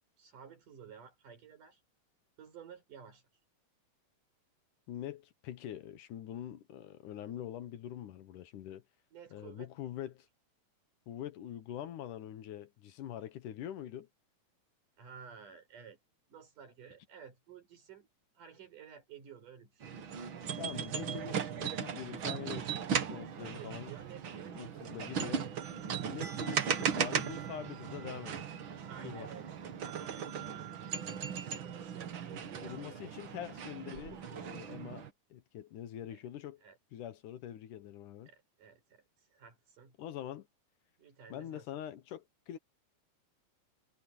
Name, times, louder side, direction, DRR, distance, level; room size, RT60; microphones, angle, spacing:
voice 1, 0.2-1.8 2.4-3.2 9.1-9.7 15.0-16.0 16.3-18.1 18.3-20.0 23.4-24.9 28.9-29.5 29.9-30.8 31.4-33.3 36.6-36.8 38.3-40.0 41.0-41.6, right 7 dB, 70° right, 6.5 m, -53 dB
voice 2, 4.9-8.8 9.3-10.3 11.1-14.1 20.6-23.9 24.5-25.5 26.1-28.5 29.0-29.3 32.6-36.6 36.9-38.3 40.0-40.5 41.3-42.6, left 11 dB, 75° left, 2.6 m, -44 dB
sound 1, 19.8-35.1, right 7 dB, 50° right, 1.7 m, -37 dB
omnidirectional pair, 3.8 m